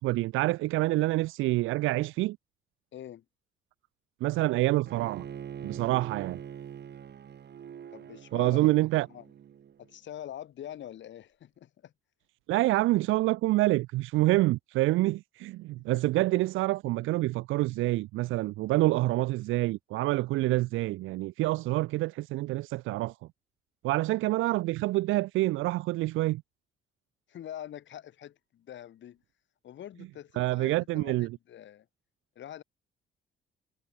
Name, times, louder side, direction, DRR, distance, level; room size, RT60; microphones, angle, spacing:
voice 1, 0.0-2.4 4.2-5.2 5.6-6.4 8.3-9.1 12.5-23.1 23.8-26.4 30.4-31.3, right 18 dB, 85° right, 0.5 m, -27 dB
voice 2, 2.9-3.2 7.9-8.8 9.1-9.2 9.8-11.9 15.9-16.0 27.3-29.2 29.6-31.9 32.3-32.6, left 11 dB, 70° left, 2.8 m, -44 dB
Bowed string instrument, 4.8-9.9, right 9 dB, 60° right, 4.9 m, -43 dB
cardioid pair, 90°, 20 cm